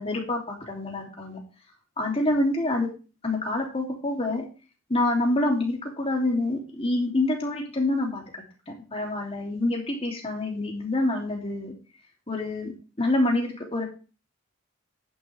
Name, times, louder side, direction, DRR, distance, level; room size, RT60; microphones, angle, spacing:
voice 1, 0.0-1.4 2.0-2.9 3.2-4.4 4.9-11.7 12.3-12.7 13.0-13.8, left 2 dB, 30° left, 0 dB, 2.9 m, -27 dB
10.5 x 9.4 x 3.4 m, 0.34 s
head